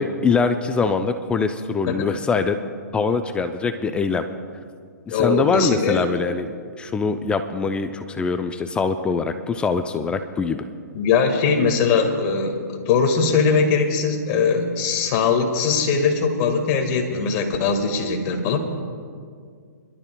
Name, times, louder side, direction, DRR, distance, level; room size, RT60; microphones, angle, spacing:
voice 1, 0.0-2.6 2.9-4.2 5.1-6.5 6.8-10.6, left 4 dB, 10° left, 8 dB, 0.4 m, -23 dB
voice 2, 5.1-6.1 10.9-18.6, left 5 dB, 35° left, 4 dB, 1.7 m, -21 dB
27.0 x 12.0 x 2.2 m, 2.1 s
hypercardioid pair, 135°, 10 cm